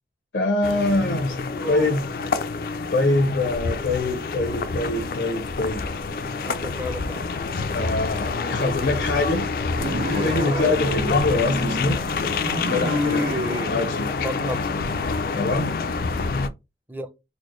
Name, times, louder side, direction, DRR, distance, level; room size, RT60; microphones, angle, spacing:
voice 1, 0.3-1.4 1.7-2.0 2.9-5.8 7.7-9.5 10.1-13.4 13.7-14.1 15.3-15.7, left 2 dB, 90° left, 0.9 m, -24 dB
sound 1, 0.6-16.5, left 4 dB, 55° left, 0.3 m, -27 dB
voice 2, 1.5-1.9 6.4-7.3 10.4-10.7 14.2-14.6 16.9-17.1, equal, 10° right, 0.4 m, -32 dB
sound 2, 9.8-13.7, equal, 65° right, 1.4 m, -28 dB
4.1 x 2.1 x 3.0 m
head